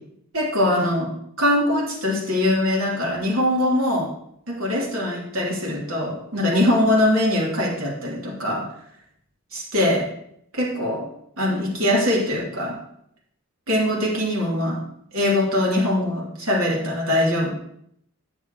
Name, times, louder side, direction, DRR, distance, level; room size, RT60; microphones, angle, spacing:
voice 1, 0.3-1.1 1.4-4.1 4.5-8.7 9.5-10.1 10.5-11.1 11.4-12.8 13.7-14.8 15.1-17.6, left 1 dB, 85° right, -4 dB, 3.1 m, -22 dB
10.5 x 8.1 x 3.0 m, 0.71 s
head